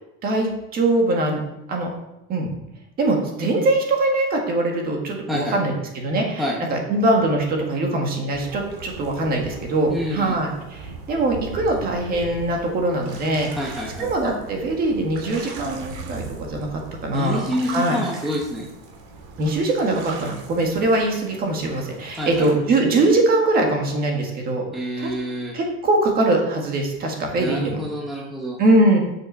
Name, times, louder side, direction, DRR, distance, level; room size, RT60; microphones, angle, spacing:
voice 1, 0.2-1.9 2.3-2.5 3.0-13.5 14.0-17.4 17.7-18.0 19.4-24.7 25.0-25.1 25.5-27.8 28.6-29.0, right 2 dB, 30° right, 1 dB, 1.8 m, -22 dB
sound 1, 8.3-22.6, right 3 dB, 70° right, 2.5 m, -39 dB
voice 2, 9.9-10.4 13.6-14.1 17.1-18.7 22.2-22.5 24.7-25.5 27.4-28.6, equal, ahead, -3 dB, 0.8 m, -27 dB
7.9 x 6.4 x 5.5 m, 0.91 s
cardioid pair, 170°, 30 cm